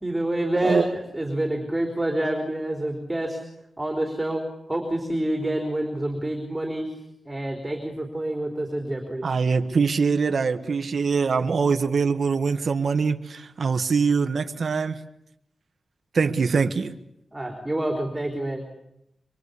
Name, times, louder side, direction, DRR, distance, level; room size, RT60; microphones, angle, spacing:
voice 1, 0.0-3.4 3.8-4.4 4.7-6.9 7.3-9.3 17.3-18.6, right 1 dB, 10° right, 4.2 m, -27 dB
voice 2, 0.6-0.9 9.2-15.0 16.1-16.9, right 5 dB, 55° right, 1.5 m, -23 dB
25.0 x 25.0 x 8.4 m
wide cardioid pair, 130°, 0 cm